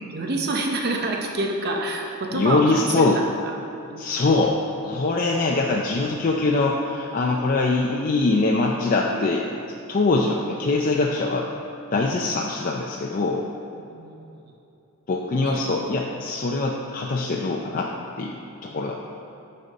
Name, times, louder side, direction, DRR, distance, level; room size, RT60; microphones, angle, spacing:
voice 1, 0.1-3.1 3.9-4.1 9.1-9.4 13.8-14.4 15.4-15.6, right 2 dB, 45° right, 1 dB, 0.7 m, -27 dB
voice 2, 2.3-3.2 4.0-9.4 9.9-11.5 11.9-13.4 15.1-17.9 18.2-18.9, left 3 dB, 40° left, -1 dB, 0.5 m, -23 dB
9.9 x 5.4 x 4.1 m, 2.8 s
head